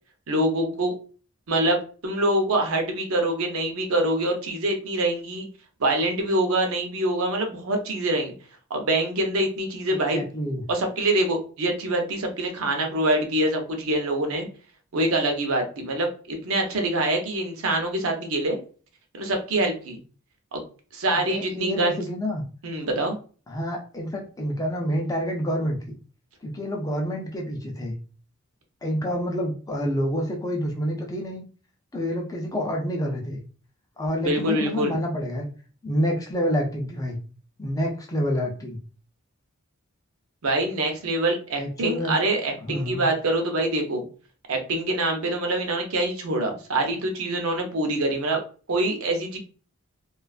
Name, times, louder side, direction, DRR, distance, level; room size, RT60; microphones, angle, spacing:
voice 1, 0.3-0.9 1.5-5.5 5.8-8.3 8.7-10.2 10.7-14.5 14.9-18.6 19.2-20.0 20.5-20.6 20.9-22.0 22.6-23.2 34.2-34.9 40.4-44.0 44.5-48.4 48.7-49.4, right 1 dB, 80° right, 3 dB, 0.6 m, -25 dB
voice 2, 9.9-10.6 21.3-22.4 23.5-25.9 26.4-28.0 28.8-31.4 31.9-33.4 34.0-35.5 35.8-37.2 37.6-38.8 41.6-42.2 42.6-43.0, equal, 15° left, 1 dB, 0.4 m, -28 dB
2.4 x 2.3 x 2.3 m, 0.39 s
head